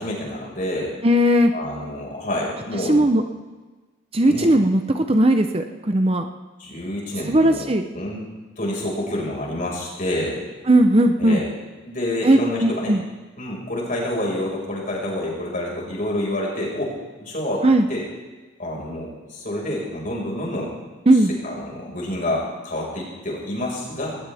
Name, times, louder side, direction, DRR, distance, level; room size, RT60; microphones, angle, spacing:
voice 1, 0.0-0.9 1.5-3.1 4.2-4.5 6.6-7.7 7.9-8.2 8.6-10.4 11.2-11.5 11.8-12.9 13.4-16.9 17.2-17.6 17.9-18.0 18.6-20.7 21.4-24.2, left 1 dB, 45° left, -3 dB, 5.4 m, -28 dB
voice 2, 1.0-1.5 2.9-3.2 4.1-6.3 7.3-7.8 10.7-11.4 12.2-13.0 17.6-17.9 21.1-21.3, right 1 dB, 30° right, 6 dB, 0.8 m, -17 dB
19.5 x 19.0 x 3.6 m, 1.3 s
head